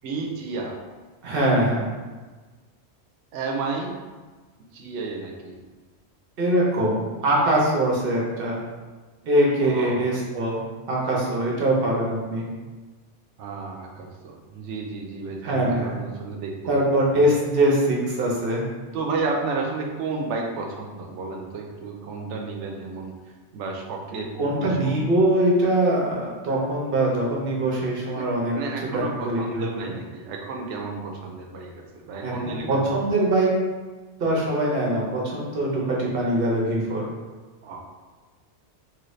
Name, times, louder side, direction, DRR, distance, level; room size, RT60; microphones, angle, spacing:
voice 1, 0.0-0.7 3.3-4.0 4.7-5.6 9.6-10.0 13.4-17.2 18.9-23.1 23.5-24.8 28.1-28.3 28.5-32.9 37.6-37.8, right 3 dB, 80° right, 1 dB, 0.9 m, -32 dB
voice 2, 1.2-1.9 6.4-8.6 9.2-12.5 15.4-15.9 16.7-18.6 24.4-28.5 28.9-29.9 32.2-33.5 34.2-37.1, right 1 dB, 55° right, -3 dB, 0.9 m, -23 dB
3.0 x 2.6 x 3.1 m, 1.3 s
omnidirectional pair, 1.2 m